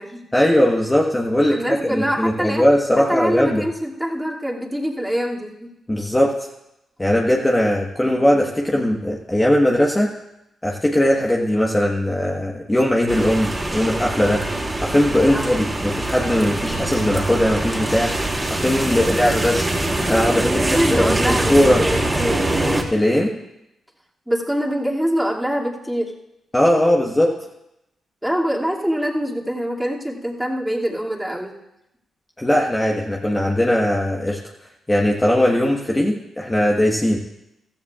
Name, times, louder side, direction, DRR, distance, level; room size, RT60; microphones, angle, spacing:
voice 1, 0.3-3.6 5.9-6.3 7.0-10.1 10.6-14.4 14.8-18.1 18.5-19.7 20.1-20.5 20.9-21.8 22.9-23.3 26.5-27.4 32.4-34.4 34.9-37.2, left 1 dB, 15° left, -1 dB, 1.4 m, -19 dB
voice 2, 1.5-2.6 3.0-5.7 15.3-15.6 18.9-19.2 20.4-22.4 23.1-23.4 24.3-26.1 28.2-31.5, equal, 5° right, -3 dB, 2.6 m, -24 dB
sound 1, 13.1-22.8, right 1 dB, 20° right, 2.7 m, -23 dB
15.5 x 14.0 x 2.5 m, 0.86 s
supercardioid pair, 45°, 0 cm